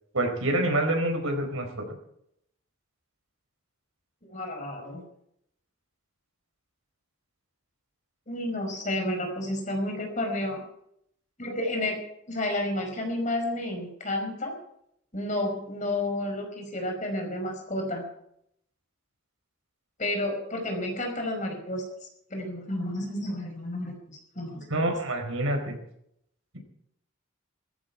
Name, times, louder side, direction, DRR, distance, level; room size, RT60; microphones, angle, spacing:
voice 1, 0.1-1.7 24.7-25.8, right 1 dB, 80° right, 4 dB, 4.8 m, -26 dB
voice 2, 4.3-5.0 8.3-10.6 11.4-12.0 12.3-14.6 15.1-18.0 20.0-21.8 22.3-24.8, left 1 dB, 35° left, 3 dB, 5.1 m, -31 dB
17.5 x 15.0 x 4.8 m, 0.74 s
head